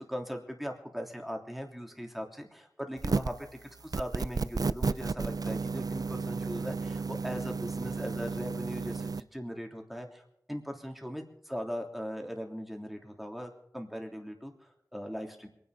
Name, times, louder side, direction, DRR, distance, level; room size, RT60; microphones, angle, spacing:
voice 1, 0.0-10.2 10.5-15.5, equal, ahead, 3 dB, 3.1 m, -39 dB
sound 1, 3.0-3.4 3.9-9.2, right 4 dB, 80° right, 0.5 m, -32 dB
26.0 x 10.5 x 4.9 m, 0.73 s
wide cardioid pair, 55°, 6 cm